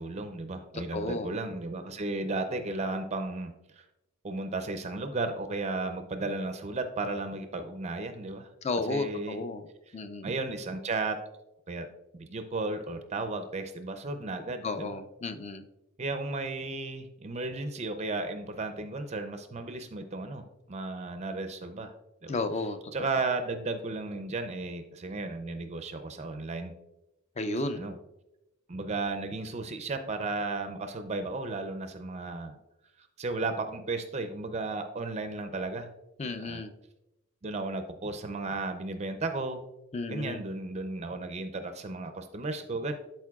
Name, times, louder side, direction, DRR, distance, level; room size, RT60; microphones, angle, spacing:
voice 1, 0.0-3.8 4.2-8.5 8.8-9.4 9.9-10.0 10.2-11.2 11.7-11.9 12.1-14.9 16.0-21.9 22.2-22.4 22.9-26.7 27.7-28.0 28.7-32.6 33.2-35.9 36.3-36.6 37.4-39.7 40.1-42.9, right 3 dB, 30° right, 7 dB, 0.5 m, -34 dB
voice 2, 0.7-1.3 8.6-9.7 9.9-10.3 14.6-15.7 22.3-22.9 27.4-27.9 36.2-36.7 39.9-40.4, left 2 dB, 30° left, 9 dB, 0.4 m, -33 dB
12.0 x 4.5 x 2.3 m, 0.92 s
head